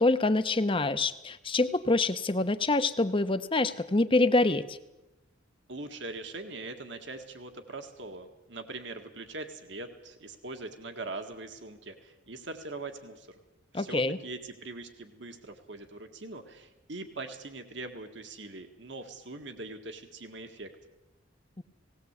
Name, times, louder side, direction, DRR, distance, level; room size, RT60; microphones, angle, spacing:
voice 1, 0.0-4.8 13.7-14.2, left 2 dB, 25° left, 11 dB, 0.9 m, -26 dB
voice 2, 5.7-13.4 13.7-20.7, right 2 dB, 65° right, 6 dB, 1.9 m, -42 dB
18.5 x 18.0 x 8.3 m, 0.95 s
head